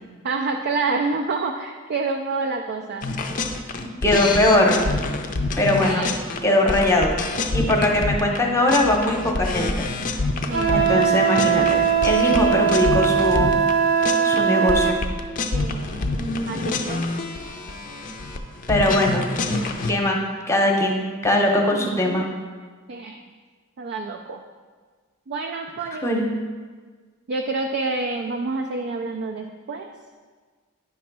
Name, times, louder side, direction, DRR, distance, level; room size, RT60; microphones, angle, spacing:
voice 1, 0.2-3.1 5.8-6.1 10.5-11.1 15.5-17.1 19.5-19.7 21.7-22.3 22.9-23.2 23.8-24.4 25.3-26.1 27.3-29.9, right 3 dB, 50° right, 3 dB, 0.4 m, -28 dB
sound 1, 3.0-8.4 8.7-11.0 11.3-13.7 14.0-14.4 14.7-19.9, left 3 dB, 40° left, 0.5 m, -27 dB
voice 2, 3.8-4.9 5.6-6.0 6.4-7.1 7.5-9.9 10.4-13.6 14.2-15.0 16.1-16.6 18.7-19.3 19.9-20.2 20.5-22.3 26.0-26.2, left 1 dB, 15° left, 0 dB, 0.9 m, -21 dB
Wind instrument woodwind instrument, 10.5-15.0, right 7 dB, 65° right, 1.0 m, -20 dB
9.3 x 3.1 x 5.9 m, 1.5 s
head